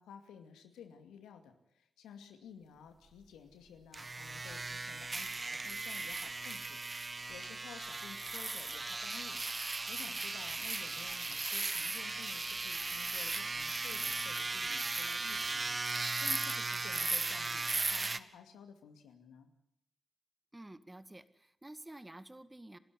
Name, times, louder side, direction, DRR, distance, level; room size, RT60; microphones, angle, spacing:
voice 1, 0.0-9.4 9.9-19.5, left 7 dB, 90° left, 7 dB, 2.4 m, -54 dB
sound 1, 3.9-18.2, right 3 dB, 40° right, 1.2 m, -37 dB
voice 2, 20.5-22.8, right 1 dB, 20° right, 13 dB, 1.9 m, -50 dB
30.0 x 13.0 x 9.8 m, 0.75 s
supercardioid pair, 40°, 0 cm